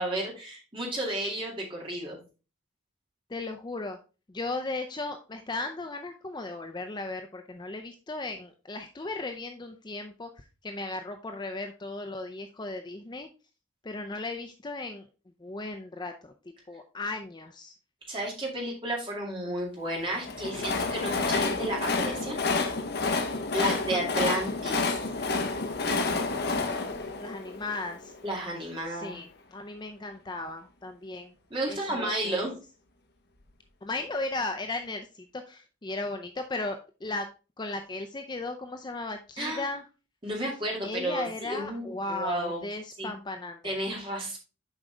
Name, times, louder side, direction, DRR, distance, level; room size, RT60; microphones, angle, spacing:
voice 1, 0.0-2.2 18.1-22.4 23.5-25.0 28.2-29.2 31.5-32.6 39.4-39.6 40.2-42.6 43.0-43.1 43.6-44.4, right 1 dB, 25° right, -2 dB, 2.2 m, -32 dB
voice 2, 3.3-4.0 4.3-13.3 13.8-15.1 15.4-16.3 16.7-17.7 23.6-24.1 26.1-28.1 28.9-31.3 31.7-32.4 33.8-37.3 37.6-39.8 40.8-43.8, left 2 dB, 20° left, 6 dB, 0.4 m, -36 dB
Train, 20.1-28.2, left 3 dB, 50° left, 0.8 m, -29 dB
7.2 x 5.1 x 3.3 m, 0.33 s
head